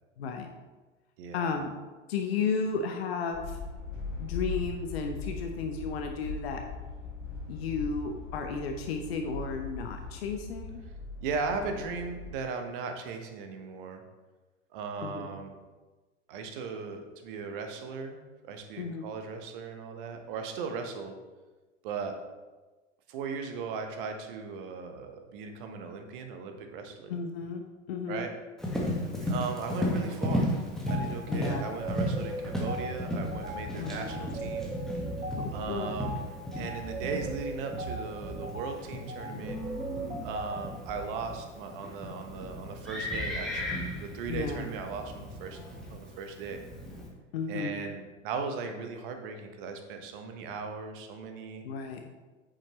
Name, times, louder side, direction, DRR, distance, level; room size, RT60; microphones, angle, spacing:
voice 1, 0.2-0.5 1.3-1.7 2.1-3.6 4.2-6.6 7.5-10.8 15.0-15.3 18.8-19.1 27.1-27.6 27.9-28.3 31.3-31.6 33.8-34.2 35.3-35.9 44.3-44.6 47.3-47.8 51.6-52.1, left 5 dB, 55° left, 4 dB, 0.9 m, -33 dB
voice 2, 1.2-1.5 11.2-14.0 14.7-15.5 16.3-18.2 18.4-21.1 21.8-22.2 23.1-27.1 28.1-28.3 29.2-30.5 30.9-34.7 35.5-36.2 36.6-39.6 40.2-45.6 45.9-46.6 47.5-51.6, right 5 dB, 45° right, 5 dB, 1.2 m, -37 dB
sound 1, 3.3-12.3, left 3 dB, 75° left, 2.1 m, -40 dB
Livestock farm animals working animals, 28.6-47.1, equal, ahead, 1.5 m, -35 dB
sound 2, 30.9-31.1 31.5-41.2, right 2 dB, 80° right, 1.8 m, -39 dB
8.8 x 7.4 x 3.1 m, 1.2 s
figure-of-eight pair, 90°, 37 cm